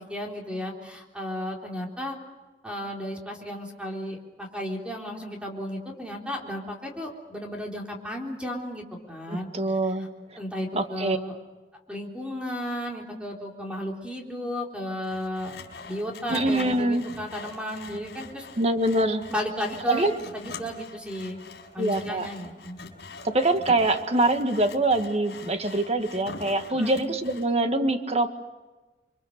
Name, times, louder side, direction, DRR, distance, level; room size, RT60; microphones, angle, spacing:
voice 1, 0.1-2.2 2.6-9.5 10.4-11.4 11.9-15.6 15.9-18.5 19.3-21.4 21.7-22.8 26.7-27.0, equal, 5° right, 0 dB, 3.8 m, -34 dB
voice 2, 9.3-10.1 10.7-11.2 16.3-17.1 18.6-19.3 19.9-20.2 21.8-22.3 23.2-28.3, right 2 dB, 40° right, 7 dB, 1.6 m, -24 dB
Sawing, 15.0-27.5, left 3 dB, 70° left, 4.7 m, -43 dB
29.5 x 24.0 x 6.6 m, 1.2 s
head